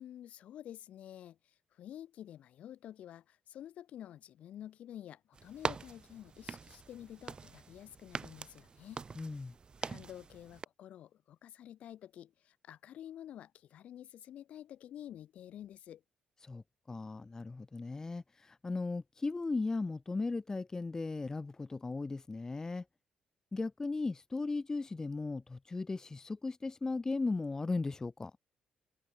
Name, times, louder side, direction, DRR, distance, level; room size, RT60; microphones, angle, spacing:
voice 1, 0.0-9.1 9.8-16.0, left 11 dB, 70° left, 2.0 m, -50 dB
sound 1, 5.3-10.6, right 5 dB, 40° right, 0.7 m, -43 dB
voice 2, 9.2-9.5 16.4-22.9 23.5-28.3, left 3 dB, 25° left, 0.3 m, -37 dB
hypercardioid pair, 50°, 2 cm